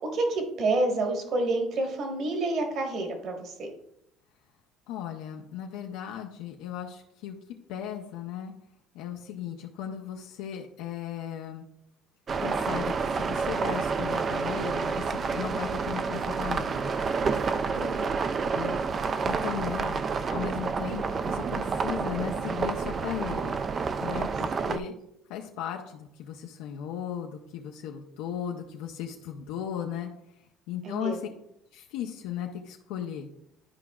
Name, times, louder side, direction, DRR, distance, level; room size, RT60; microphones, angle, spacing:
voice 1, 0.1-3.7 17.7-18.1 24.6-25.0 30.8-31.2, right 2 dB, 45° right, 3 dB, 1.4 m, -29 dB
voice 2, 4.9-7.3 7.7-8.5 8.9-11.7 12.4-16.9 18.5-18.8 19.3-20.0 20.3-23.6 24.0-24.9 25.3-30.1 30.7-31.2 31.7-33.3, left 9 dB, 85° left, 2 dB, 0.7 m, -36 dB
sound 1, 12.3-24.8, right 5 dB, 30° right, 0.3 m, -29 dB
11.5 x 4.9 x 2.3 m, 0.78 s
cardioid pair, 145°, 0 cm